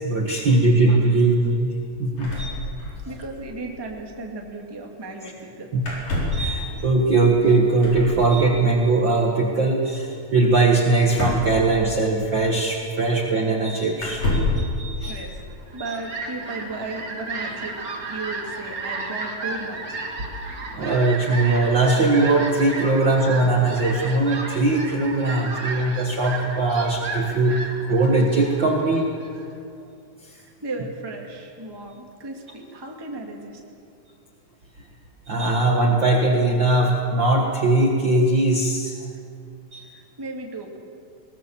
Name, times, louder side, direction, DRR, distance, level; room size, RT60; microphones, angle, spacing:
voice 1, 0.0-1.7 2.0-2.5 5.2-5.3 5.7-5.8 6.3-15.2 15.8-15.9 20.7-27.6 27.9-29.1 30.2-30.3 35.3-39.0 39.7-39.9, right 2 dB, 50° right, 0 dB, 1.6 m, -20 dB
sound 1, 2.2-3.2 3.5-3.6 3.8-4.0 5.8-6.5 7.8-8.2 11.1-12.3 13.1-13.2 14.0-14.7, left 2 dB, 60° left, 5.8 m, -27 dB
voice 2, 3.0-5.7 15.0-15.4 15.7-17.8 18.1-20.0 30.3-33.6 39.1-39.2 39.8-40.8, right 2 dB, 10° right, 1 dB, 1.4 m, -35 dB
Fowl, 15.5-29.4, right 3 dB, 30° right, 2.0 m, -33 dB
21.0 x 19.5 x 7.3 m, 2.4 s
omnidirectional pair, 3.9 m